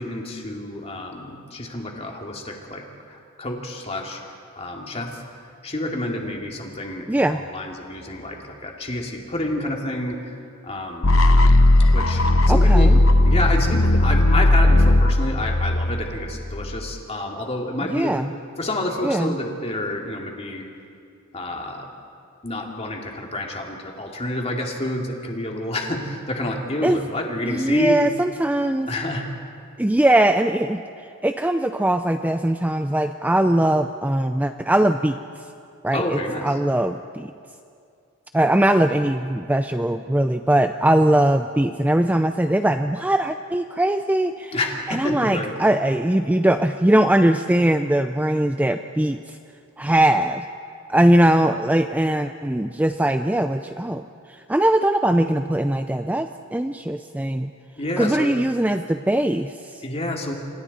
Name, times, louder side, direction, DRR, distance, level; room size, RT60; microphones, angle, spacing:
voice 1, 0.0-4.2 4.6-5.2 5.6-10.2 10.6-11.3 11.9-12.9 13.3-18.2 18.6-20.6 21.3-21.9 22.4-28.1 28.9-29.3 35.9-36.5 44.5-45.5 57.8-58.3 59.8-60.3, left 1 dB, 30° left, 1 dB, 2.6 m, -28 dB
voice 2, 7.1-7.4 12.5-13.0 17.9-18.3 19.0-19.4 26.8-27.0 27.5-28.9 29.8-30.8 31.2-35.2 35.8-37.3 38.3-44.6 44.9-49.4 49.8-50.4 50.9-57.5 58.0-59.8, right 1 dB, 5° right, 8 dB, 0.4 m, -21 dB
sound 1, 11.0-17.0, left 1 dB, 65° left, 1.0 m, -16 dB
29.5 x 26.5 x 4.3 m, 2.4 s
head